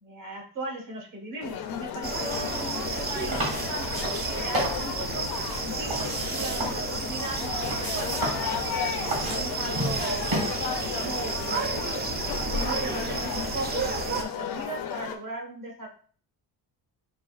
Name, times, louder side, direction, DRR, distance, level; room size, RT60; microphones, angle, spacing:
voice 1, 0.0-5.3 5.6-8.2 9.2-10.3 10.9-11.4 11.8-15.9, right 2 dB, 55° right, 0 dB, 1.4 m, -38 dB
sound 1, 1.4-15.2, left 8 dB, 65° left, 0.5 m, -34 dB
sound 2, 2.0-14.2, right 4 dB, 25° right, 0.4 m, -32 dB
sound 3, 2.3-10.4, right 1 dB, 70° right, 1.8 m, -34 dB
5.0 x 2.6 x 2.4 m, 0.44 s
cardioid pair, 130°, 40 cm